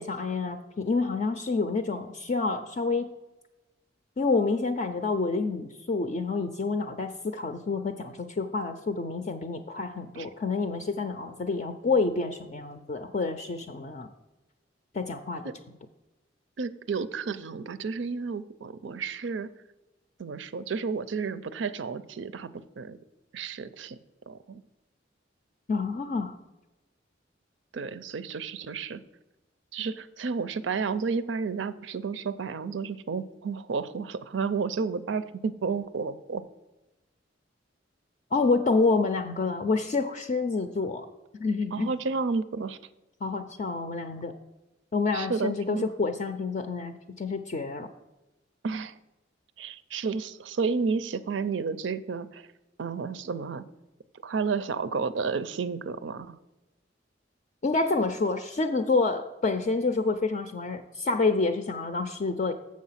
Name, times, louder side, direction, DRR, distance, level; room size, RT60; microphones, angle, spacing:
voice 1, 0.0-3.1 4.2-14.1 14.9-15.4 25.7-26.4 38.3-41.1 41.4-41.9 43.2-44.3 44.9-47.9 57.6-62.5, left 3 dB, 40° left, 7 dB, 0.4 m, -28 dB
voice 2, 16.6-19.5 20.2-23.0 23.3-24.0 24.3-24.6 27.7-29.0 29.7-36.4 41.7-42.8 45.1-45.9 48.6-48.9 49.6-52.5 52.8-53.6 54.2-56.3, right 5 dB, 80° right, 14 dB, 0.5 m, -31 dB
7.4 x 6.3 x 5.7 m, 1.1 s
head